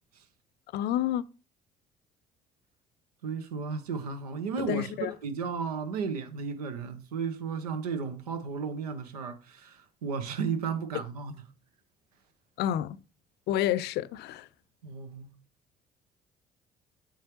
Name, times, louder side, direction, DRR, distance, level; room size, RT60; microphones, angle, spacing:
voice 1, 0.7-1.2 4.6-5.1 12.6-13.0 13.5-14.5, left 12 dB, 60° left, 0.5 m, -29 dB
voice 2, 3.2-4.9 5.2-11.4 14.8-15.3, right 5 dB, 80° right, 0.8 m, -34 dB
7.3 x 7.2 x 3.1 m
hypercardioid pair, 50°, 19 cm